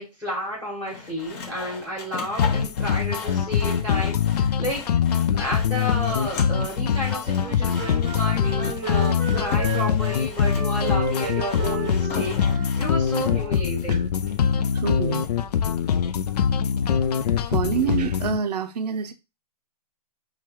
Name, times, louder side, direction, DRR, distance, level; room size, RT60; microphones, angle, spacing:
voice 1, 0.0-4.9 5.3-14.1, equal, ahead, 1.1 m, -31 dB
Sawing, 0.9-13.3, left 5 dB, 25° left, 0.7 m, -39 dB
sound 1, 2.4-18.4, left 7 dB, 80° left, 0.4 m, -23 dB
Wind instrument woodwind instrument, 7.2-13.6, right 6 dB, 25° right, 0.7 m, -34 dB
voice 2, 14.7-15.3 17.5-19.1, right 7 dB, 85° right, 0.5 m, -27 dB
4.8 x 2.3 x 3.0 m
hypercardioid pair, 150°, 20 cm